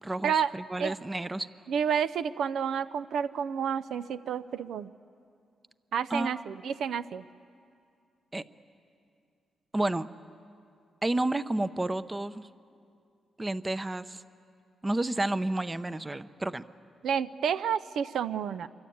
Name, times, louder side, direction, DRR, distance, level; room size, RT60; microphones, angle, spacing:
voice 1, 0.0-1.5 6.1-6.5 8.3-8.4 9.7-10.1 11.0-12.5 13.4-14.2 14.8-16.6, right 2 dB, 20° right, 13 dB, 0.7 m, -31 dB
voice 2, 1.7-4.9 5.9-7.2 17.0-18.7, right 7 dB, 80° right, 13 dB, 0.6 m, -30 dB
25.5 x 24.0 x 8.6 m, 2.4 s
cardioid pair, 100°, 0 cm